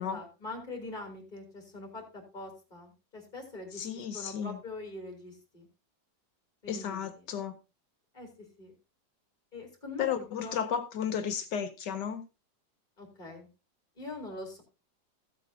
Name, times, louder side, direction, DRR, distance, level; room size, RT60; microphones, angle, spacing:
voice 1, 0.0-3.8 4.1-5.7 6.6-7.2 8.1-8.3 8.6-8.7 9.5-10.6 13.0-13.5 14.0-14.6, left 2 dB, 25° left, 2 dB, 3.1 m, -43 dB
voice 2, 3.7-4.6 6.7-7.6 10.0-12.2, left 8 dB, 70° left, 11 dB, 1.4 m, -33 dB
14.5 x 8.3 x 2.7 m, 0.28 s
omnidirectional pair, 2.0 m